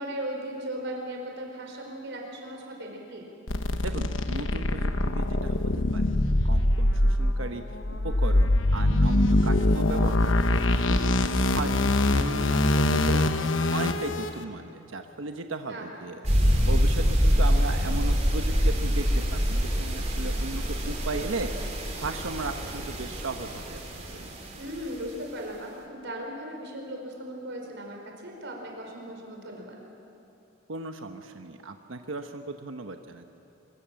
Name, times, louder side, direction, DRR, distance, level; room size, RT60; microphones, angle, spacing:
voice 1, 0.0-3.3 11.6-11.9 15.7-15.9 24.6-29.8, right 1 dB, 65° right, 1 dB, 4.9 m, -37 dB
sound 1, 3.5-14.3, left 1 dB, 75° left, 1.2 m, -23 dB
voice 2, 3.8-7.6 7.9-11.7 12.1-13.2 13.7-16.3 16.6-21.5 22.0-24.4 30.7-33.3, right 3 dB, 90° right, 6 dB, 1.1 m, -36 dB
sound 2, 16.2-24.7, equal, 35° right, 3.9 m, -25 dB
23.5 x 23.5 x 7.6 m, 2.7 s
head